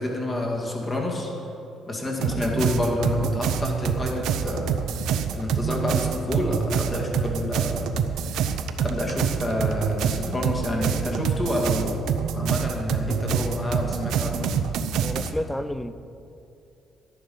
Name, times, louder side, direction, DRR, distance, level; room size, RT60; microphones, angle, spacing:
voice 1, 0.0-1.3 1.9-7.9 8.3-8.4 8.8-14.5, left 1 dB, 20° left, -1 dB, 2.3 m, -28 dB
sound 1, 2.2-15.3, right 7 dB, 80° right, 0.7 m, -26 dB
voice 2, 15.0-15.9, left 1 dB, 5° left, 13 dB, 0.4 m, -30 dB
12.0 x 10.5 x 5.5 m, 2.7 s
cardioid pair, 125°, 0 cm